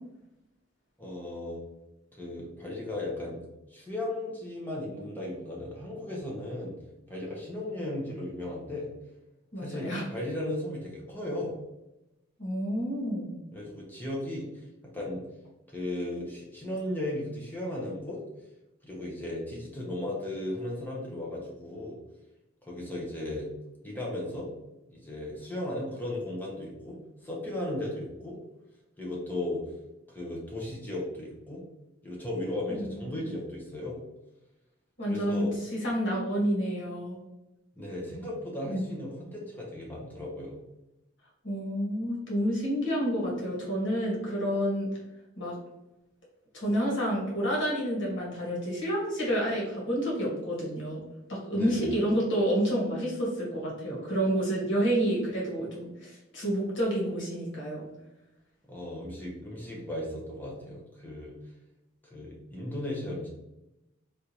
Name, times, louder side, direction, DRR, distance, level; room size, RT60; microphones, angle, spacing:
voice 1, 1.0-1.6 2.1-3.4 3.7-6.8 7.1-8.9 9.6-11.6 13.5-14.7 14.9-15.2 15.7-18.2 18.8-22.0 22.6-23.5 23.8-24.5 24.9-27.0 27.2-28.4 29.0-29.6 30.1-31.6 32.0-34.0 35.1-35.5 37.8-40.6 51.5-52.0 58.7-61.4 62.0-63.3, left 1 dB, 10° left, -4 dB, 0.8 m, -36 dB
voice 2, 9.5-10.0 12.4-13.4 32.7-32.9 35.0-35.5 35.7-37.2 38.7-38.9 41.4-44.9 45.4-45.5 46.5-51.0 51.3-57.8, equal, 65° left, -4 dB, 1.5 m, -29 dB
3.5 x 2.5 x 2.8 m, 0.94 s
head